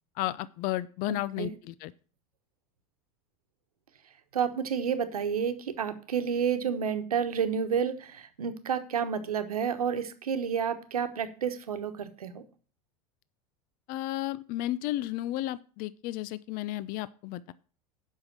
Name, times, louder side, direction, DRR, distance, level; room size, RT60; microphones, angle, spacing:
voice 1, 0.2-1.9 13.9-17.5, left 15 dB, 50° left, 18 dB, 0.6 m, -33 dB
voice 2, 1.1-1.5 4.3-12.4, right 7 dB, 90° right, 9 dB, 1.1 m, -30 dB
7.9 x 5.7 x 7.4 m, 0.39 s
hypercardioid pair, 90°, 18 cm